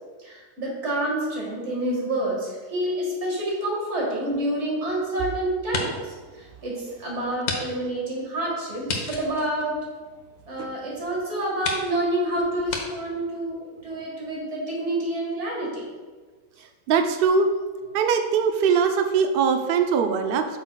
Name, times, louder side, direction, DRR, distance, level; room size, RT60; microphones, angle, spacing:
voice 1, 0.2-9.8 10.5-15.9 17.9-18.0, right 1 dB, 50° right, -3 dB, 2.0 m, -28 dB
sound 1, 4.2-5.2 5.6-6.2 6.6-6.7 7.4-7.6 7.9-8.0 8.8-10.4 11.1-11.2 11.6-11.9 12.7-12.8, left 4 dB, 80° left, 1.4 m, -32 dB
voice 2, 16.9-17.5 17.9-20.5, right 6 dB, 80° right, 6 dB, 0.5 m, -21 dB
8.0 x 6.4 x 2.3 m, 1.4 s
omnidirectional pair, 1.5 m